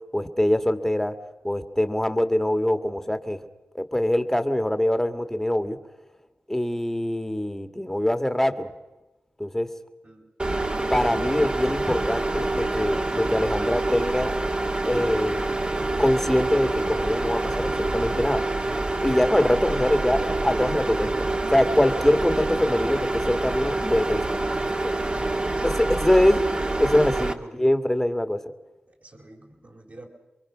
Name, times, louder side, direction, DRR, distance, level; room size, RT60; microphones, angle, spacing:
voice 1, 0.1-1.1 1.4-3.4 3.7-5.8 6.5-8.7 9.4-9.7 10.9-14.3 14.8-15.5 16.0-18.4 19.0-24.2 25.6-26.5 26.8-28.4, left 1 dB, 10° left, 8 dB, 1.8 m, -23 dB
sound 1, 10.4-27.3, right 2 dB, 30° right, 1.7 m, -26 dB
voice 2, 24.6-25.8 26.9-27.6 28.9-30.1, right 1 dB, 50° right, -2 dB, 3.9 m, -48 dB
27.5 x 23.0 x 6.2 m, 1.1 s
wide cardioid pair, 70°, 4 cm